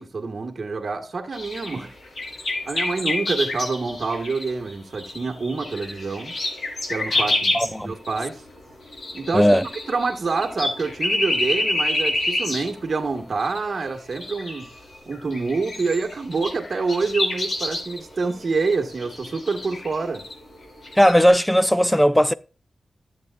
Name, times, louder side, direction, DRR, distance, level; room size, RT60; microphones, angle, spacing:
voice 1, 0.0-1.9 2.7-6.3 6.9-8.4 9.1-9.5 9.9-14.7 15.1-20.2, right 4 dB, 50° right, 1.8 m, -27 dB
sound 1, 1.3-7.8 8.0-8.2 8.6-13.0 13.4-13.8 14.1-20.3 20.8-21.2, left 2 dB, 60° left, 4.3 m, -28 dB
voice 2, 7.5-7.9 9.3-9.6 21.0-22.3, equal, 5° left, 0.5 m, -17 dB
14.0 x 8.0 x 2.5 m
wide cardioid pair, 120°, 0 cm